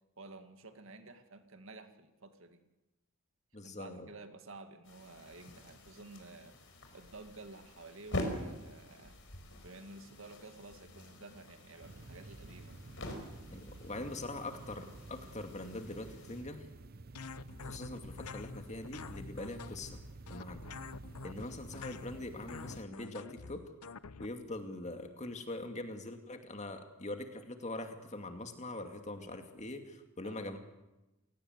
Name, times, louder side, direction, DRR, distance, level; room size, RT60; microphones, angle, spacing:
voice 1, 0.2-2.6 3.6-9.2 9.5-12.8 30.2-30.6, right 2 dB, 60° right, 7 dB, 2.0 m, -52 dB
voice 2, 3.5-4.1 13.5-16.7 17.6-20.0 20.3-20.7 21.2-23.6 24.2-30.6, left 2 dB, 30° left, 5 dB, 2.4 m, -43 dB
sound 1, 4.8-16.4, left 1 dB, 55° left, 5.4 m, -45 dB
sound 2, 11.8-22.9, right 2 dB, 45° right, 0.8 m, -51 dB
sound 3, 17.1-24.3, left 4 dB, 90° left, 0.8 m, -47 dB
28.0 x 18.5 x 8.1 m, 1.0 s
head